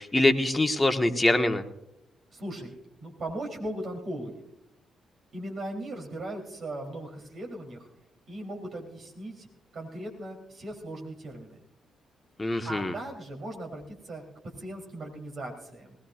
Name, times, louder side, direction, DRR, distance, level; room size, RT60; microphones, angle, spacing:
voice 1, 0.0-1.6 12.4-12.9, left 2 dB, 20° left, 6 dB, 1.3 m, -24 dB
voice 2, 2.3-4.3 5.3-7.9 8.3-9.5 9.7-11.6 12.6-14.2 14.6-15.9, right 1 dB, 50° right, 1 dB, 3.4 m, -38 dB
20.0 x 17.5 x 2.5 m, 0.82 s
figure-of-eight pair, 40°, 0 cm